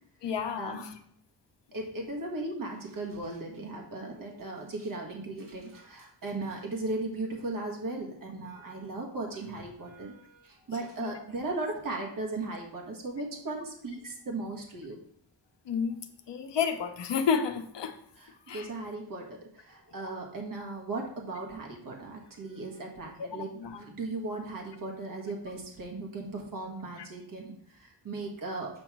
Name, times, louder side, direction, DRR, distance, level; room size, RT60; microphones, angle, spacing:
voice 1, 0.2-0.9 11.0-11.1 15.6-16.0 16.3-18.0 18.5-18.7 20.0-20.1 23.2-23.8 27.0-27.1, left 6 dB, 85° left, 7 dB, 0.9 m, -31 dB
voice 2, 1.7-15.0 18.2-28.7, right 2 dB, 50° right, 0 dB, 1.3 m, -37 dB
7.6 x 3.1 x 6.0 m, 0.64 s
wide cardioid pair, 175°, 41 cm